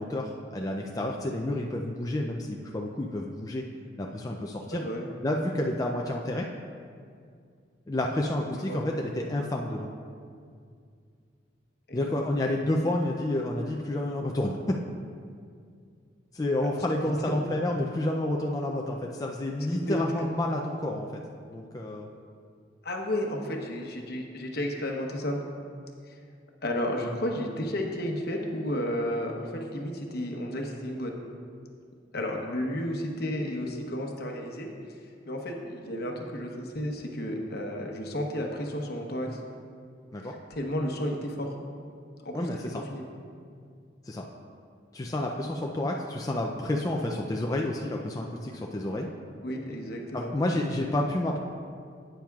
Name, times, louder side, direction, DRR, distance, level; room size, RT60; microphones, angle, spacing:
voice 1, 0.0-3.6 4.0-4.8 5.2-6.5 7.9-9.9 11.9-14.6 16.3-21.1 21.5-22.1 40.1-40.3 42.3-42.8 44.0-44.3 44.9-49.1 50.1-51.4, left 1 dB, 20° left, 0 dB, 0.4 m, -30 dB
voice 2, 4.7-5.1 8.5-8.8 11.9-12.2 17.0-17.4 19.7-20.3 22.8-25.4 26.1-26.2 26.6-31.1 32.1-34.7 35.3-39.4 40.2-41.5 42.2-42.5 42.7-43.0 49.4-50.3, left 1 dB, 55° left, 1 dB, 1.0 m, -32 dB
11.5 x 9.0 x 2.4 m, 2.2 s
head